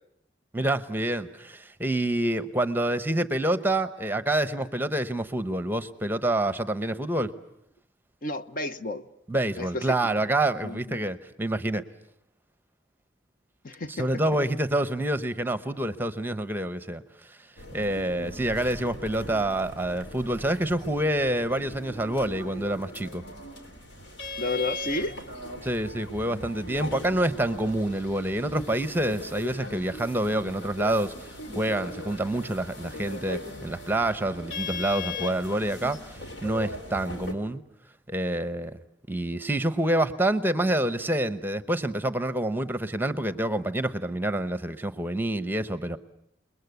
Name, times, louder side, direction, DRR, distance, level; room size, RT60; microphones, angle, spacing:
voice 1, 0.5-7.3 9.3-11.8 13.9-17.4 17.7-23.2 25.6-37.6 38.1-38.8 39.1-46.0, right 1 dB, 10° right, 0.9 m, -27 dB
voice 2, 8.2-9.0 9.6-9.9 10.6-11.0 13.6-14.1 24.4-25.2, left 2 dB, 50° left, 1.0 m, -31 dB
sound 1, 17.6-37.3, left 2 dB, 70° left, 3.2 m, -39 dB
29.5 x 21.5 x 8.1 m
head